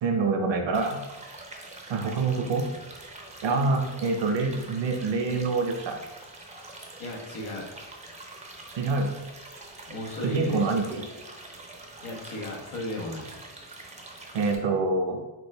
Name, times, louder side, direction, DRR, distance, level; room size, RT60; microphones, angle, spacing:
voice 1, 0.0-1.0 1.9-2.7 3.4-6.0 8.8-9.1 10.2-11.0 14.3-15.2, right 3 dB, 60° right, 4 dB, 0.9 m, -26 dB
sound 1, 0.7-14.5, right 2 dB, 15° right, 0.6 m, -45 dB
voice 2, 7.0-7.7 9.9-10.8 12.0-13.3, left 1 dB, 75° left, -1 dB, 1.3 m, -35 dB
6.1 x 2.5 x 3.4 m, 1.1 s
cardioid pair, 120°, 49 cm